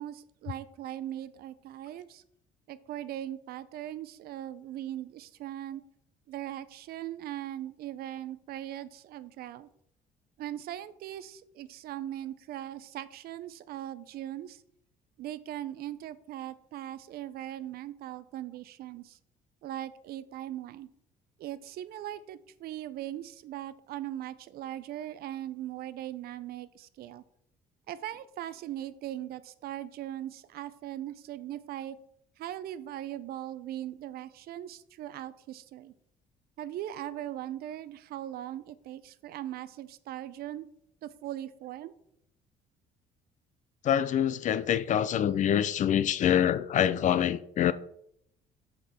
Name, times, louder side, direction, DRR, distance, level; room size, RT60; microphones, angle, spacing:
voice 1, 0.0-2.2 2.7-5.8 6.3-9.7 10.4-14.6 15.2-19.2 19.6-20.9 21.4-27.2 27.9-32.0 32.4-35.9 36.6-40.7 41.0-41.9, right 12 dB, 65° right, 0.5 m, -39 dB
voice 2, 43.8-47.7, left 9 dB, 45° left, 0.4 m, -25 dB
6.0 x 5.2 x 4.2 m
cardioid pair, 110°, 17 cm